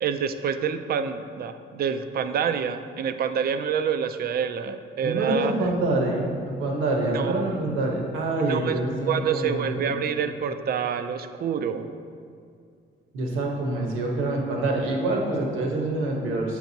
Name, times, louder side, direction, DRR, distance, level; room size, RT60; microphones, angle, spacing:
voice 1, 0.0-5.5 7.1-7.6 8.4-8.7 9.1-11.9, right 7 dB, 50° right, 9 dB, 0.4 m, -27 dB
voice 2, 5.0-9.8 13.1-16.6, right 2 dB, 85° right, 0 dB, 1.0 m, -26 dB
7.6 x 4.6 x 2.7 m, 2.3 s
cardioid pair, 90°, 20 cm